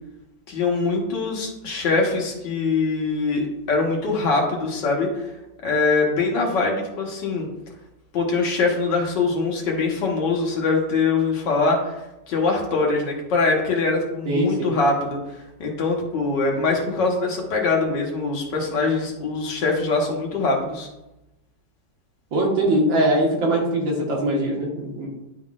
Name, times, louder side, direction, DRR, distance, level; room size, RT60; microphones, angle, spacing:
voice 1, 0.5-5.3 5.6-7.5 8.1-11.9 12.3-15.2 15.6-20.9, left 3 dB, 70° left, 0 dB, 1.8 m, -23 dB
voice 2, 14.3-14.7 22.3-25.1, right 1 dB, 85° right, -2 dB, 2.2 m, -21 dB
11.0 x 3.8 x 2.4 m, 0.95 s
omnidirectional pair, 2.0 m